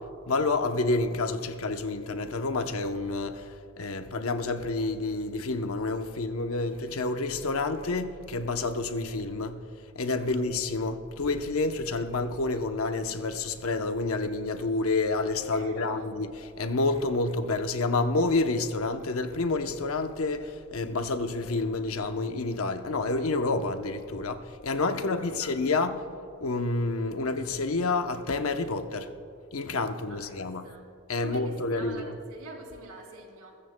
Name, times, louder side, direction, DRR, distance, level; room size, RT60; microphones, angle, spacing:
voice 1, 0.3-9.6 10.0-26.0 26.4-29.1 29.5-30.7 31.1-32.1, left 3 dB, 70° left, 0.8 m, -29 dB
voice 2, 10.2-10.5 15.5-16.0 24.9-25.5 30.1-30.3 30.6-30.9 31.2-33.6, right 2 dB, 80° right, 2.9 m, -45 dB
22.0 x 14.0 x 2.2 m
head